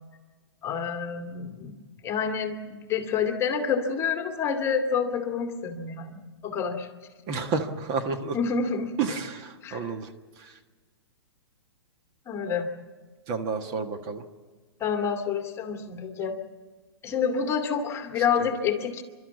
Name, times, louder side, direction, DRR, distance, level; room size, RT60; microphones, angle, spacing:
voice 1, 0.6-1.8 2.0-6.9 8.3-9.2 9.6-9.9 12.3-12.7 14.8-16.4 17.0-19.0, left 6 dB, 20° left, 4 dB, 2.2 m, -28 dB
voice 2, 7.3-8.4 9.0-10.1 10.4-10.5 13.3-14.2, right 4 dB, 35° right, 5 dB, 1.5 m, -30 dB
29.0 x 12.5 x 8.3 m, 1.4 s
figure-of-eight pair, 120°, 14 cm